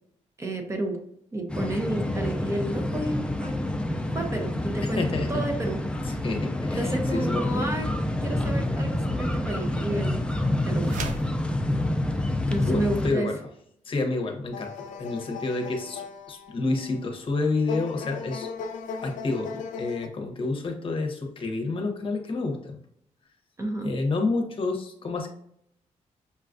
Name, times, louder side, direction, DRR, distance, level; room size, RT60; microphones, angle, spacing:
voice 1, 0.4-1.0 1.3-3.5 4.1-5.0 5.3-5.8 6.8-7.9 8.2-10.2 10.6-11.0 12.5-13.3 23.6-23.9, right 1 dB, 25° right, 3 dB, 0.7 m, -31 dB
sound 1, 1.5-13.1, left 1 dB, 10° left, 0.4 m, -28 dB
voice 2, 4.8-5.4 6.0-7.6 12.7-13.4 13.8-14.7 15.0-18.5 19.0-22.8 23.8-25.3, left 3 dB, 45° left, 3 dB, 0.8 m, -29 dB
sound 2, 10.8-11.4, right 4 dB, 90° right, 0.5 m, -34 dB
sound 3, 14.5-20.1, left 5 dB, 85° left, 0.4 m, -38 dB
5.5 x 2.3 x 2.5 m, 0.71 s
cardioid pair, 115°, 13 cm